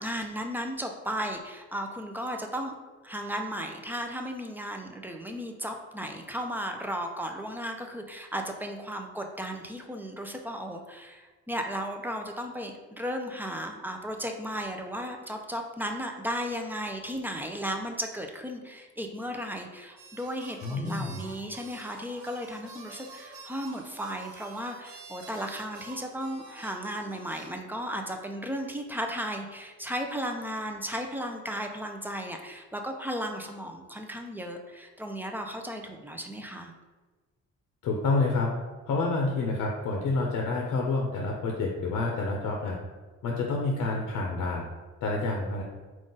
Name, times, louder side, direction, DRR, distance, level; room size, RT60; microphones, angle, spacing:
voice 1, 0.0-2.7 3.0-36.7, equal, 5° right, 3 dB, 0.4 m, -35 dB
sound 1, 20.0-27.5, right 4 dB, 70° right, 0.7 m, -48 dB
voice 2, 20.6-21.2 37.8-38.5 38.9-42.8 43.2-44.7 45.0-45.6, left 3 dB, 75° left, 0 dB, 0.6 m, -28 dB
3.8 x 2.4 x 3.8 m, 1.3 s
cardioid pair, 90°, 30 cm